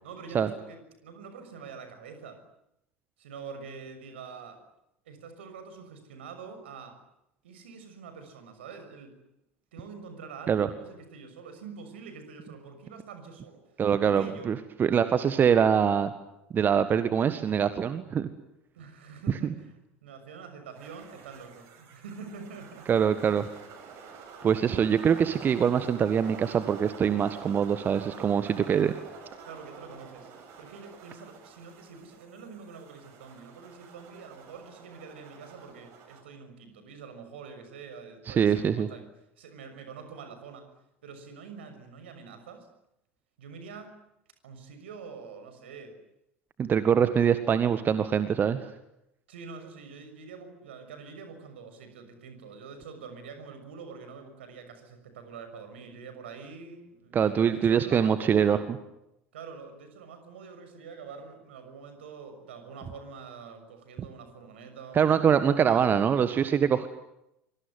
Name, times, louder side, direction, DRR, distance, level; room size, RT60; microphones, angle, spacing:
voice 1, 0.0-2.4 3.2-4.6 5.1-7.0 7.4-9.2 9.7-13.6 14.0-14.5 18.7-22.9 29.5-30.3 30.6-39.1 39.4-40.7 41.0-42.7 43.4-43.9 44.4-46.0 49.3-58.7 59.3-66.1, right 5 dB, 65° right, 8 dB, 6.4 m, -45 dB
voice 2, 13.8-16.1 16.5-18.3 22.9-23.5 24.4-28.9 38.3-38.9 46.6-48.7 57.1-58.6 64.9-66.9, right 7 dB, 30° right, 12 dB, 1.7 m, -24 dB
sound 1, 20.7-36.2, right 6 dB, 50° right, 7.3 m, -48 dB
25.0 x 24.5 x 9.5 m, 0.84 s
figure-of-eight pair, 70°, 7 cm